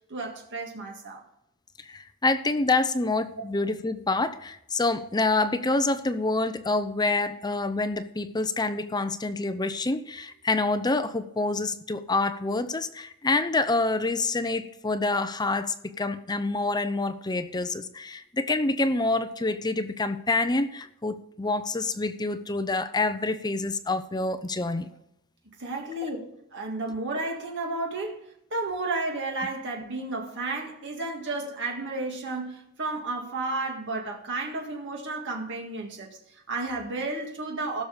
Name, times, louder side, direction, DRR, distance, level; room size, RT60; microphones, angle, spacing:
voice 1, 0.1-1.2 25.6-28.2 28.5-37.8, right 2 dB, 55° right, 1.9 m, -32 dB
voice 2, 1.9-24.9 26.0-26.1, left 3 dB, 20° left, 0.7 m, -27 dB
16.5 x 6.9 x 5.1 m
head